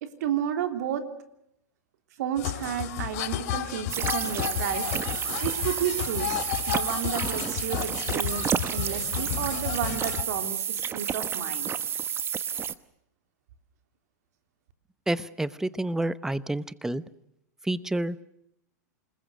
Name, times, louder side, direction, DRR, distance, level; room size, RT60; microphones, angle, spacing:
voice 1, 0.0-1.1 2.2-4.9 5.4-6.4 6.7-11.7, right 9 dB, 70° right, 7 dB, 3.5 m, -32 dB
sound 1, 2.4-10.2, left 13 dB, 60° left, 3.2 m, -32 dB
sound 2, 3.9-12.7, right 8 dB, 25° right, 1.1 m, -30 dB
voice 2, 15.1-17.0 17.6-18.3, right 1 dB, 5° right, 16 dB, 1.0 m, -29 dB
28.0 x 20.5 x 6.4 m, 0.76 s
hypercardioid pair, 110°, 9 cm